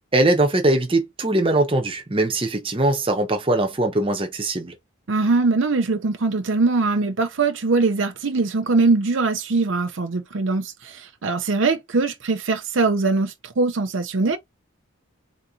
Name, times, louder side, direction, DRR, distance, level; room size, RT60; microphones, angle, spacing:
voice 1, 0.1-4.7, right 2 dB, 25° right, 0.9 m, -21 dB
voice 2, 5.1-14.4, right 3 dB, 65° right, 0.6 m, -22 dB
4.0 x 2.8 x 3.7 m
head